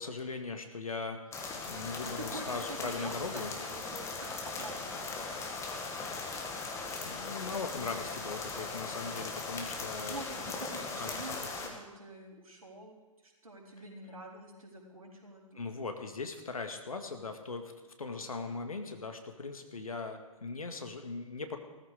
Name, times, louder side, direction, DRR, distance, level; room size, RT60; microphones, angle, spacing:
voice 1, 0.0-3.5 7.0-10.2 11.0-11.2 15.6-17.7 18.0-21.6, left 4 dB, 75° left, 6 dB, 2.0 m, -39 dB
sound 1, 1.3-11.7, left 3 dB, 15° left, 2.1 m, -39 dB
voice 2, 2.0-5.3 10.1-13.0 13.2-15.7, right 2 dB, 70° right, -2 dB, 4.3 m, -47 dB
17.0 x 14.0 x 5.1 m, 1.2 s
figure-of-eight pair, 120°, 18 cm